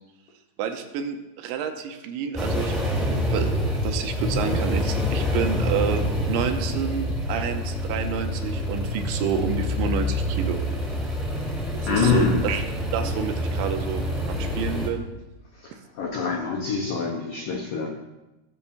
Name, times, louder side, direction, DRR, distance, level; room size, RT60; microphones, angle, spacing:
voice 1, 0.6-3.5 3.8-10.6 11.7-12.6 12.9-15.0, right 7 dB, 80° right, 5 dB, 3.0 m, -29 dB
sound 1, 2.3-14.9, equal, ahead, 0.8 m, -27 dB
voice 2, 11.9-12.4 15.6-15.7 16.0-17.9, left 4 dB, 90° left, 0 dB, 1.9 m, -24 dB
17.5 x 7.1 x 2.6 m, 1.0 s
omnidirectional pair, 5.3 m